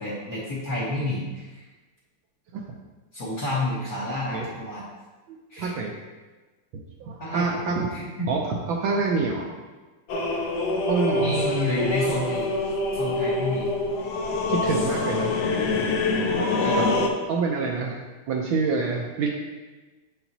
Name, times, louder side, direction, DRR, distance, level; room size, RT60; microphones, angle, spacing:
voice 1, 0.0-1.6 3.1-4.8 5.5-5.7 7.2-7.6 7.9-8.0 11.1-12.5 12.9-13.7 16.6-17.1, left 1 dB, 50° left, -8 dB, 1.4 m, -29 dB
voice 2, 5.3-5.9 7.0-7.9 8.3-9.5 10.9-11.5 14.5-15.4 16.7-16.9 17.3-18.0 18.3-19.3, right 4 dB, 75° right, -1 dB, 1.4 m, -26 dB
sound 1, 10.1-17.1, left 2 dB, 70° left, 0.9 m, -25 dB
6.9 x 5.9 x 2.7 m, 1.2 s
omnidirectional pair, 2.4 m